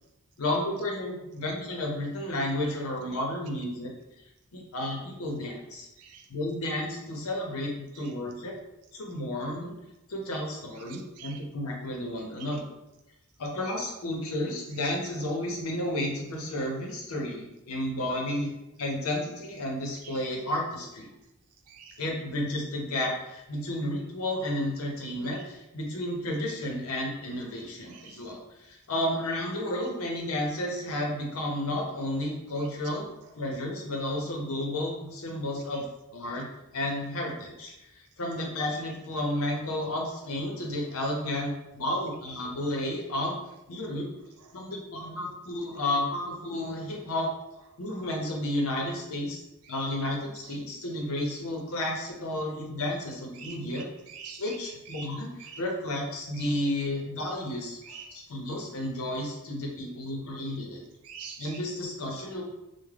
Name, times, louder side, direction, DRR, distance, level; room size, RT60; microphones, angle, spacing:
voice 1, 0.4-3.9 4.5-5.9 6.3-8.5 8.9-9.7 10.1-12.6 13.4-18.5 18.8-21.1 22.0-33.0 33.4-35.8 36.1-36.5 36.7-43.3 43.7-44.1 44.5-47.3 47.8-53.9 54.4-60.8 61.4-62.4, left 1 dB, 70° left, 0 dB, 0.6 m, -32 dB
voice 2, 10.9-11.4 20.0-20.2 21.7-22.0 27.9-28.2 35.7-35.8 49.7-49.8 53.4-54.6 54.9-55.1 55.4-55.6 56.4-56.5 57.8-58.1 61.0-61.6, right 6 dB, 80° right, 4 dB, 0.4 m, -45 dB
2.3 x 2.1 x 3.3 m, 0.92 s
head